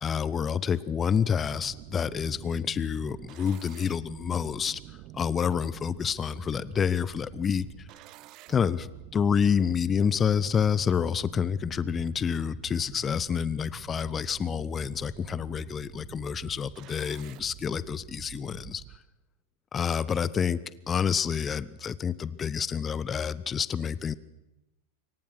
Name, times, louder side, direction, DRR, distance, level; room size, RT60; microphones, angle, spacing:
voice 1, 0.0-4.8 5.1-7.7 8.5-8.9 9.1-18.8 19.7-24.2, left 7 dB, 20° left, 19 dB, 0.8 m, -28 dB
sound 1, 1.5-19.0, right 16 dB, 40° right, 0.9 m, -47 dB
26.5 x 24.0 x 6.2 m, 0.95 s
figure-of-eight pair, 90°, 0 cm